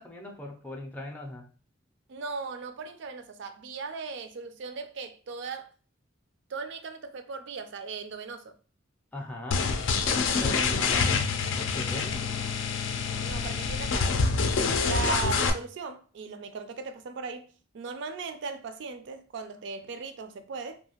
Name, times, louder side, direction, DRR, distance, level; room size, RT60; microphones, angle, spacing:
voice 1, 0.0-1.5 9.1-9.7 10.4-11.3 11.6-12.2, left 1 dB, 10° left, 0.4 m, -39 dB
voice 2, 2.1-5.7 6.5-8.6 13.2-14.2 14.8-17.5 17.7-20.8, right 4 dB, 65° right, 0.4 m, -38 dB
sound 1, 9.5-15.5, left 5 dB, 80° left, 0.4 m, -26 dB
2.7 x 2.4 x 2.7 m
head